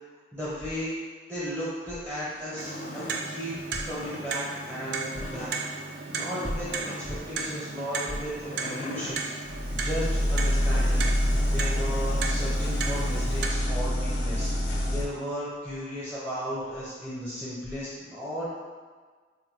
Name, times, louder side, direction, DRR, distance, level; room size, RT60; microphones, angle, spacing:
voice 1, 0.3-0.9 1.3-3.6 3.8-11.0 11.4-18.5, equal, 5° right, -10 dB, 0.7 m, -35 dB
squeeky floor, 2.3-3.3 3.9-4.2 5.1-5.5 6.3-7.3 8.4-9.2 10.4-11.0, left 2 dB, 40° left, 0.4 m, -41 dB
Clock, 2.6-13.5, right 4 dB, 60° right, 0.3 m, -35 dB
sound 1, 9.4-15.0, equal, 75° left, 0.7 m, -26 dB
3.6 x 2.2 x 3.1 m, 1.5 s
head